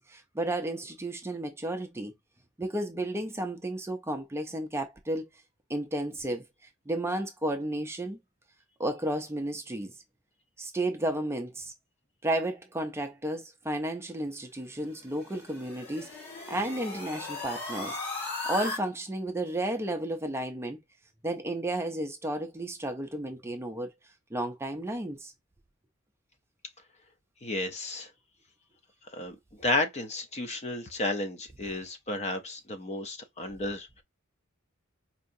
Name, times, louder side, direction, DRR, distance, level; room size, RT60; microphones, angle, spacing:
voice 1, 0.0-2.1 2.6-5.2 5.7-6.4 6.9-8.2 8.8-9.9 10.6-11.7 12.2-18.0 18.5-20.8 21.2-23.9 24.3-25.3, right 1 dB, 10° right, 0.5 m, -32 dB
sound 1, 14.8-18.8, left 2 dB, 55° left, 1.7 m, -37 dB
voice 2, 27.4-28.1 29.1-34.0, left 2 dB, 30° left, 0.6 m, -32 dB
4.5 x 2.8 x 2.6 m
head